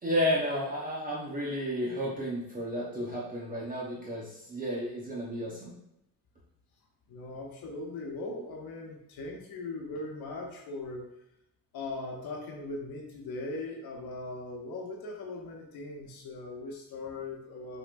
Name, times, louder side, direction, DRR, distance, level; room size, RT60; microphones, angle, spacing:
voice 1, 0.0-5.8, equal, 25° right, -5 dB, 0.9 m, -32 dB
voice 2, 7.1-11.1 11.7-17.8, left 2 dB, 80° left, 1 dB, 0.9 m, -39 dB
5.6 x 3.6 x 2.5 m, 0.82 s
cardioid pair, 135°, 36 cm